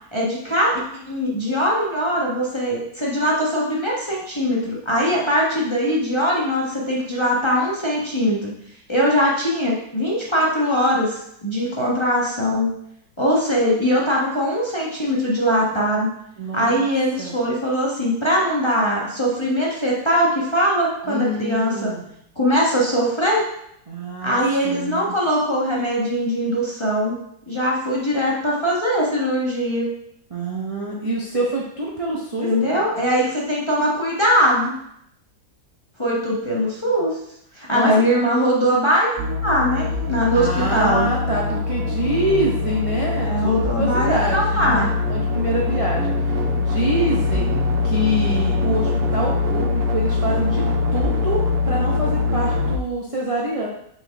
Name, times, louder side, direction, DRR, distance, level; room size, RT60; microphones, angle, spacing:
voice 1, 0.1-8.5 8.9-12.8 13.2-16.1 16.5-21.9 22.4-23.4 24.2-27.2 27.5-29.9 32.4-34.7 36.0-37.2 37.5-39.1 39.4-41.1 43.2-44.9, equal, 20° left, -5 dB, 0.9 m, -21 dB
voice 2, 16.4-16.8 17.2-17.4 21.0-22.0 23.9-24.4 24.6-25.1 30.3-33.1 37.7-37.9 40.3-47.5 47.8-50.6 50.9-53.7, right 1 dB, 40° right, -4 dB, 0.5 m, -26 dB
sound 1, 39.2-52.8, left 4 dB, 90° right, 0.7 m, -22 dB
6.3 x 4.5 x 3.4 m, 0.73 s
omnidirectional pair, 2.0 m